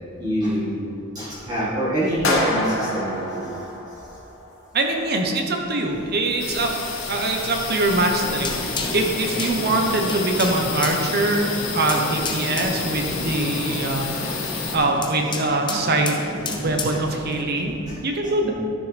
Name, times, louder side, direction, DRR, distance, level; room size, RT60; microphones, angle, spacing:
voice 1, 0.2-4.2 7.2-7.3 14.1-14.5 15.7-15.9 16.3-17.0 17.9-18.0 18.2-18.5, equal, 20° right, -10 dB, 1.9 m, -27 dB
sound 1, 2.2-4.5, left 1 dB, 70° left, 2.0 m, -27 dB
voice 2, 4.7-16.3 16.6-18.5, right 2 dB, 45° right, 3 dB, 1.0 m, -23 dB
sound 2, 6.4-14.8, left 5 dB, 85° left, 1.4 m, -31 dB
sound 3, 8.2-17.4, left 2 dB, 20° left, 0.8 m, -31 dB
12.5 x 6.8 x 3.4 m, 2.5 s
head